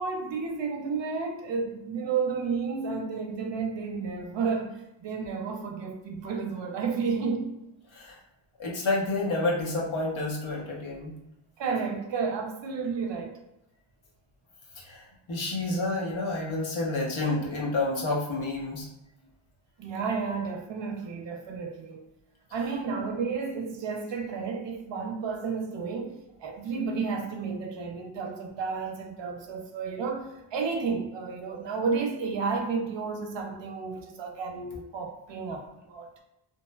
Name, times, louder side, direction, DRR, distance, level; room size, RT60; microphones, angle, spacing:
voice 1, 0.0-7.6 11.6-13.4 19.8-22.0 22.5-36.1, right 5 dB, 65° right, 0.6 m, -32 dB
voice 2, 8.6-11.1 14.8-15.0 15.3-18.9, left 2 dB, 75° left, 0.9 m, -29 dB
3.0 x 2.0 x 2.2 m
wide cardioid pair, 95°, 48 cm